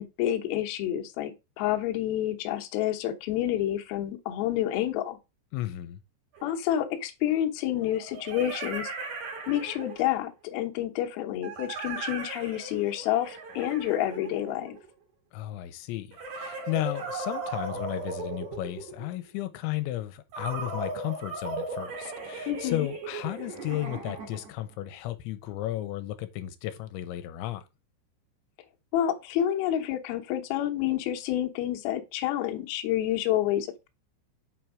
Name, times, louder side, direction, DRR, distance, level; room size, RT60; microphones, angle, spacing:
voice 1, 0.0-5.2 6.4-9.1 9.5-14.8 22.5-22.9 28.9-33.9, left 12 dB, 70° left, 2.5 m, -29 dB
voice 2, 5.5-6.0 15.3-27.6, left 14 dB, 90° left, 3.0 m, -34 dB
sound 1, 6.3-6.4 7.8-10.2 11.4-14.9 16.1-19.2 20.3-24.6, right 3 dB, 55° right, 2.2 m, -37 dB
7.9 x 4.5 x 5.0 m
omnidirectional pair, 5.3 m